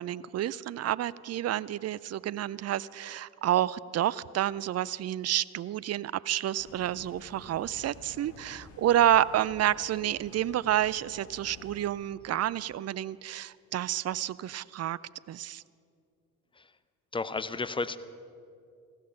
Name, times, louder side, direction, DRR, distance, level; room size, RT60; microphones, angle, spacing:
voice 1, 0.0-15.0 15.3-15.6, right 12 dB, 35° right, 20 dB, 0.4 m, -29 dB
sound 1, 6.6-12.1, left 3 dB, 60° left, 2.0 m, -51 dB
voice 2, 17.1-18.0, left 3 dB, 10° left, 14 dB, 0.6 m, -32 dB
15.5 x 13.5 x 5.7 m, 2.4 s
hypercardioid pair, 50°, 45 cm